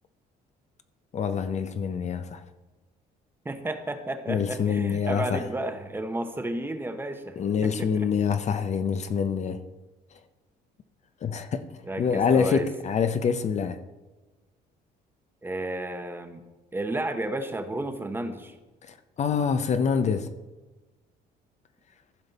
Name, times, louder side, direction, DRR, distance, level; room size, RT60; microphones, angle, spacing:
voice 1, 1.1-2.4 4.3-5.5 7.4-9.6 11.2-11.6 12.0-13.8 18.9-20.3, left 6 dB, 40° left, 0.7 m, -26 dB
voice 2, 3.4-8.1 11.8-12.7 15.4-16.4 16.7-18.5, right 1 dB, 15° right, 0.9 m, -32 dB
14.5 x 5.3 x 4.1 m
cardioid pair, 110°, 17 cm